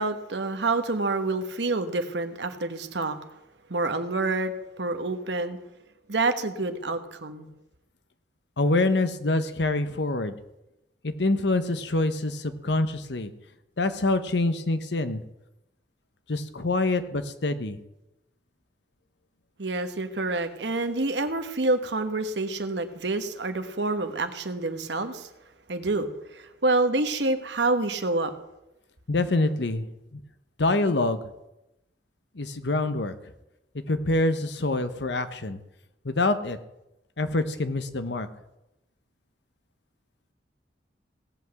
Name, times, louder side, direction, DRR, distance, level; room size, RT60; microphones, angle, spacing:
voice 1, 0.0-3.2 3.7-5.6 6.1-7.5 19.6-25.3 25.7-28.3, right 2 dB, 75° right, 8 dB, 1.3 m, -27 dB
voice 2, 8.6-10.4 11.0-13.3 13.8-15.2 16.3-17.8 29.1-29.9 30.1-30.2 30.6-31.2 32.3-33.1 33.7-35.6 36.0-36.6 37.2-38.3, left 2 dB, 70° left, 10 dB, 1.0 m, -25 dB
17.5 x 5.9 x 7.7 m, 0.90 s
head